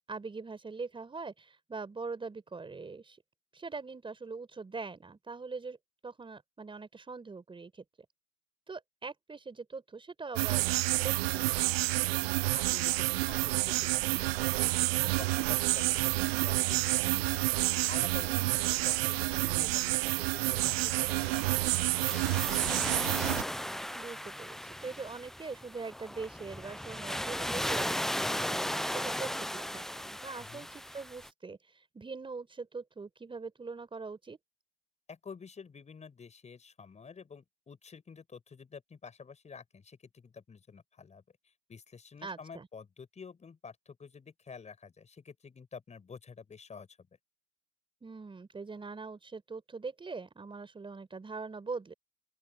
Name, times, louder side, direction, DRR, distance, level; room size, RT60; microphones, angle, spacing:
voice 1, 0.1-3.2 3.5-5.8 6.0-7.8 8.7-10.6 10.9-11.6 18.3-18.5 23.9-34.4 42.2-42.7 48.0-51.9, right 4 dB, 15° right, 5.0 m, -42 dB
sound 1, 10.4-23.4, right 21 dB, 60° right, 0.5 m, -29 dB
voice 2, 12.5-17.5 17.9-22.7 30.4-30.7 35.1-41.2 41.7-47.1, left 5 dB, 20° left, 6.5 m, -49 dB
sound 2, 16.5-16.9 17.2-20.1 20.5-20.8, left 16 dB, 65° left, 6.4 m, -57 dB
sound 3, 20.6-31.3, equal, ahead, 0.7 m, -36 dB
open air
hypercardioid pair, 95°, 34 cm